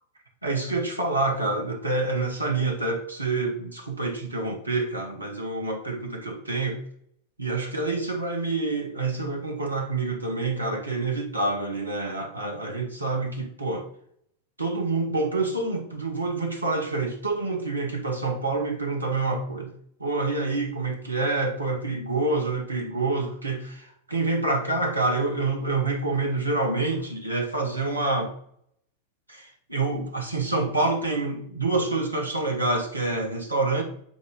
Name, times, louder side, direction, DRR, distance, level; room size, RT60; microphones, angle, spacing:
voice 1, 0.4-6.8 7.4-13.9 14.6-19.7 20.0-28.3 29.3-33.8, right 3 dB, 85° right, 2 dB, 1.2 m, -27 dB
8.4 x 3.8 x 3.7 m, 0.67 s
figure-of-eight pair, 90°, 0 cm